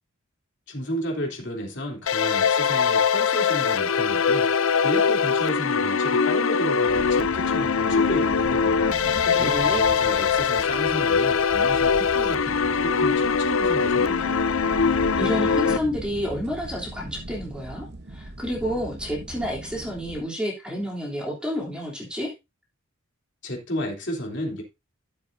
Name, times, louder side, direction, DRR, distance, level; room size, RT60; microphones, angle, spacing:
voice 1, 0.7-4.5 4.8-8.9 9.4-14.4 23.4-24.6, equal, 55° left, 3.4 m, -32 dB
sound 1, 2.1-15.8, left 6 dB, 70° left, 0.6 m, -22 dB
sound 2, 6.9-20.2, right 1 dB, 50° right, 1.2 m, -39 dB
voice 2, 8.8-9.8 15.2-22.3, equal, 5° right, 3.4 m, -30 dB
14.0 x 7.8 x 2.7 m
head